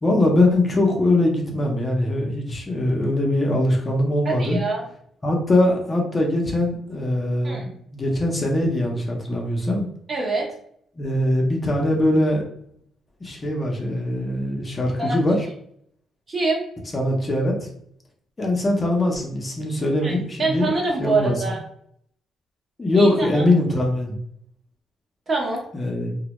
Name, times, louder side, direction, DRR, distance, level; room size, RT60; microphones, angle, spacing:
voice 1, 0.0-4.6 5.2-7.6 7.9-9.9 11.0-12.4 13.2-15.5 16.9-17.7 18.4-20.7 21.0-21.3 22.8-24.2 25.7-26.1, left 1 dB, 30° left, 0 dB, 0.6 m, -21 dB
voice 2, 4.2-4.8 7.4-7.7 10.1-10.5 15.0-15.2 16.3-16.6 20.0-21.6 22.9-23.4 25.3-25.6, right 3 dB, 35° right, -1 dB, 0.8 m, -25 dB
2.1 x 2.0 x 2.9 m, 0.67 s
cardioid pair, 90°, 0 cm